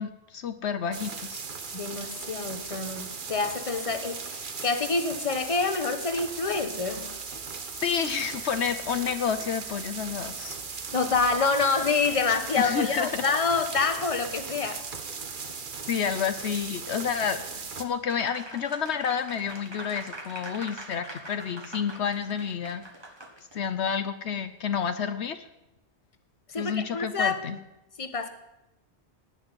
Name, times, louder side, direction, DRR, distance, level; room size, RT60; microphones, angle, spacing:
voice 1, 0.0-1.4 7.8-10.6 12.6-13.2 15.9-17.4 17.8-22.8 23.5-25.5 26.5-27.6, left 7 dB, 75° left, 10 dB, 1.1 m, -30 dB
sound 1, 0.9-17.8, right 5 dB, 50° right, 1.2 m, -38 dB
voice 2, 1.7-7.1 10.9-14.8 26.5-27.4 28.0-28.3, left 4 dB, 30° left, 8 dB, 1.2 m, -27 dB
Applause, 18.1-23.7, right 2 dB, 25° right, 1.6 m, -43 dB
18.5 x 6.4 x 9.8 m, 0.93 s
omnidirectional pair, 1.2 m